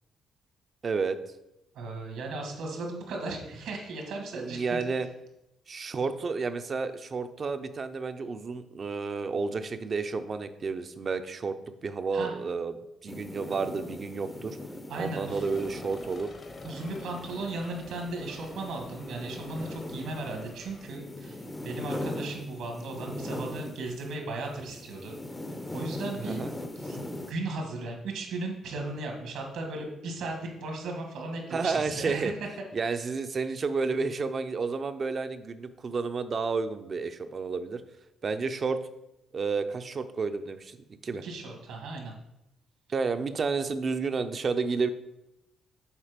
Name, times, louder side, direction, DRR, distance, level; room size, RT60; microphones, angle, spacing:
voice 1, 0.8-1.2 4.4-5.1 5.7-11.5 11.8-14.6 14.9-16.3 26.3-26.5 31.5-32.3 32.7-37.8 38.2-38.8 39.3-40.8 41.0-41.2 42.9-44.9, right 4 dB, 45° right, 10 dB, 0.6 m, -31 dB
voice 2, 1.7-4.8 12.1-12.4 14.9-15.4 16.6-25.2 25.7-26.5 26.8-27.0 27.3-32.2 32.9-33.0 41.2-42.1, right 2 dB, 80° right, 2 dB, 1.8 m, -36 dB
sound 1, 13.1-24.2 24.4-27.3, left 1 dB, 20° left, 0.7 m, -40 dB
sound 2, 15.2-20.9, left 2 dB, 45° left, 1.1 m, -48 dB
7.3 x 4.2 x 5.1 m, 0.89 s
cardioid pair, 90°, 0 cm